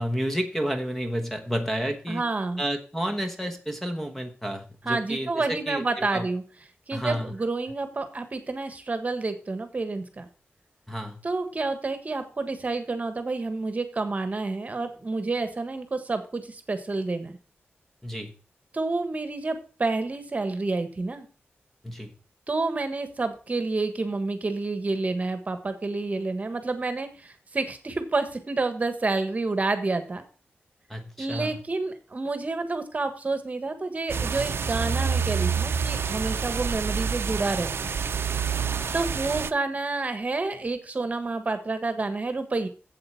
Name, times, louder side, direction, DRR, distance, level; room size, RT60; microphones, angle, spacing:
voice 1, 0.0-2.2 2.6-6.3 6.9-7.3 10.9-11.2 18.0-18.3 21.8-22.1 30.9-31.6 38.6-38.9, equal, 5° left, 5 dB, 1.2 m, -31 dB
voice 2, 2.1-2.6 4.8-6.4 6.9-10.2 11.2-17.4 18.7-21.3 22.5-30.2 31.2-37.9 38.9-42.7, right 3 dB, 35° right, 9 dB, 1.4 m, -29 dB
sound 1, 34.1-39.5, right 6 dB, 75° right, 0.6 m, -27 dB
7.8 x 7.8 x 5.9 m, 0.38 s
wide cardioid pair, 125°, 4 cm